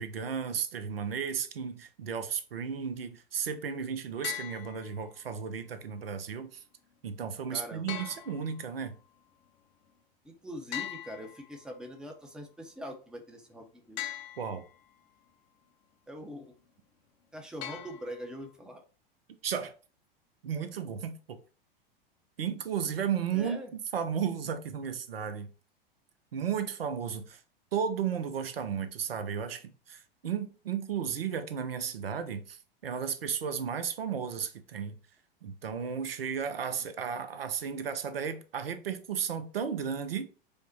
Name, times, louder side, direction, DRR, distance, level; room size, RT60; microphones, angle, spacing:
voice 1, 0.0-6.6 7.0-9.0 14.4-14.6 19.4-19.7 20.4-21.4 22.4-25.5 26.3-27.4 27.7-35.0 35.4-40.2, right 7 dB, 80° right, 0.5 m, -34 dB
sound 1, 4.2-5.2 7.9-9.0 10.7-11.9 14.0-14.9 17.6-18.5, left 12 dB, 40° left, 0.6 m, -41 dB
voice 2, 7.5-8.0 10.2-14.0 16.1-16.5 17.3-18.8 23.3-23.7, equal, 5° right, 0.6 m, -43 dB
5.0 x 2.1 x 2.7 m
figure-of-eight pair, 90°, 29 cm